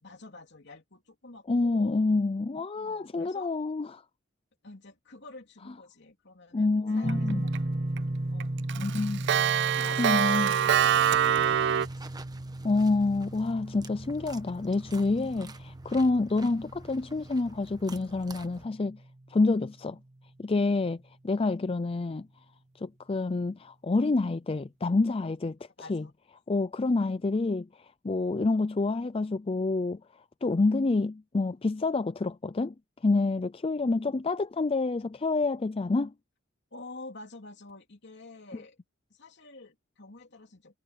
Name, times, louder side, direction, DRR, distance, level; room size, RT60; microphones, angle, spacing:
voice 1, 0.0-2.0 2.7-3.5 4.6-7.9 8.3-9.1 9.7-11.7 12.0-12.1 16.4-16.6 25.8-26.1 36.7-38.8 39.1-40.8, left 2 dB, 60° left, 3.2 m, -48 dB
voice 2, 1.5-4.0 6.5-7.5 8.7-9.3 10.0-10.5 12.6-19.0 19.3-20.0 20.4-22.3 22.8-25.6 25.9-26.1 26.5-27.7 28.0-30.0 30.4-32.7 33.0-36.1, left 3 dB, 30° left, 0.4 m, -27 dB
sound 1, 7.0-19.9, right 1 dB, 35° right, 1.5 m, -36 dB
Clock, 7.1-7.6 8.0-8.1 8.4-11.9, right 9 dB, 60° right, 0.4 m, -24 dB
sound 2, 10.6-18.7, right 2 dB, 20° right, 1.1 m, -49 dB
head